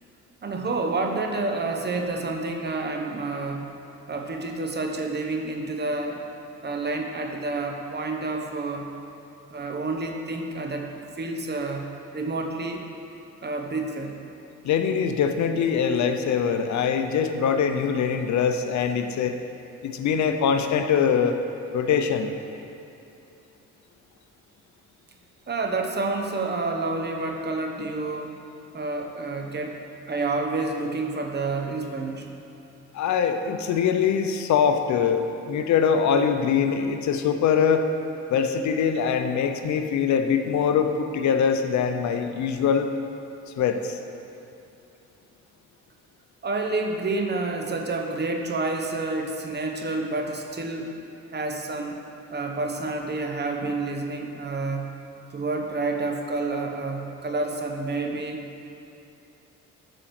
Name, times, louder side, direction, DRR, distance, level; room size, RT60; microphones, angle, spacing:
voice 1, 0.4-3.7 4.1-6.2 6.6-8.9 9.5-11.8 12.1-12.8 13.4-14.1 25.5-28.4 28.7-29.8 30.1-32.3 46.4-51.0 51.3-52.0 52.3-54.9 55.3-58.4, right 3 dB, 35° right, 3 dB, 1.0 m, -29 dB
voice 2, 14.6-19.4 19.8-21.4 21.7-22.3 32.9-37.9 38.3-42.9 43.6-43.9, left 7 dB, 70° left, 7 dB, 0.7 m, -23 dB
8.9 x 5.0 x 6.0 m, 2.8 s
cardioid pair, 90°, 30 cm